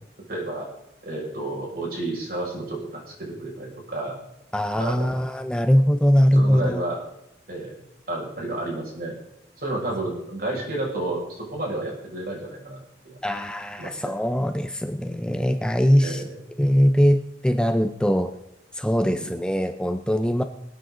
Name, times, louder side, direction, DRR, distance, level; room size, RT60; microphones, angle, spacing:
voice 1, 0.3-0.7 1.0-4.2 4.8-5.1 6.3-7.0 7.5-7.8 8.1-9.2 9.6-13.2 13.8-14.2 16.0-16.3 19.1-19.3, right 2 dB, 55° right, -2 dB, 6.0 m, -31 dB
voice 2, 4.5-6.8 13.2-16.2 16.6-18.3 18.7-20.4, equal, 5° left, 7 dB, 0.6 m, -21 dB
24.5 x 8.9 x 3.9 m, 0.84 s
head